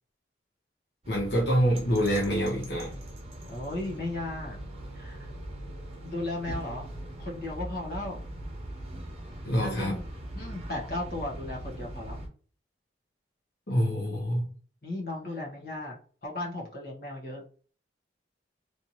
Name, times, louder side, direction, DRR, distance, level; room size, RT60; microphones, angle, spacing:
sound 1, 1.0-12.3, right 1 dB, 35° right, 0.9 m, -41 dB
voice 1, 1.1-2.9 9.4-10.0 13.7-14.5, equal, 70° left, -3 dB, 0.9 m, -26 dB
voice 2, 3.5-4.6 4.9-5.3 6.0-6.9 7.2-8.3 9.6-10.0 10.3-12.2 14.8-17.4, left 2 dB, 55° left, -2 dB, 1.3 m, -35 dB
3.4 x 2.8 x 3.0 m, 0.41 s
head